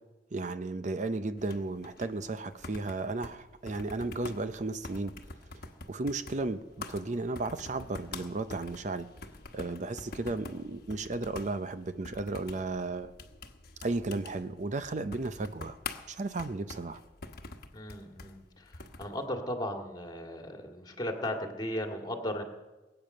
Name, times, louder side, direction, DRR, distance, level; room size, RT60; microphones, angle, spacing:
voice 1, 0.3-5.1 5.9-9.1 9.5-13.1 13.8-15.8 16.1-17.0, right 2 dB, 45° right, 11 dB, 0.6 m, -34 dB
sound 1, 1.4-19.2, left 3 dB, 60° left, 1.2 m, -46 dB
voice 2, 17.7-22.4, left 1 dB, 25° left, 3 dB, 2.0 m, -36 dB
22.0 x 9.0 x 6.6 m, 1.1 s
head